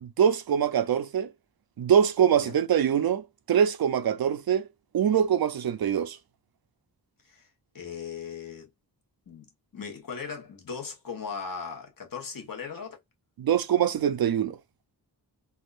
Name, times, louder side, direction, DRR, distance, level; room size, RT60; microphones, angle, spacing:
voice 1, 0.0-1.3 1.8-4.7 4.9-6.2 13.4-14.6, right 8 dB, 60° right, 0.5 m, -24 dB
voice 2, 7.7-8.7 9.3-13.0, left 6 dB, 55° left, 1.1 m, -38 dB
3.5 x 2.4 x 2.4 m
wide cardioid pair, 135°, 41 cm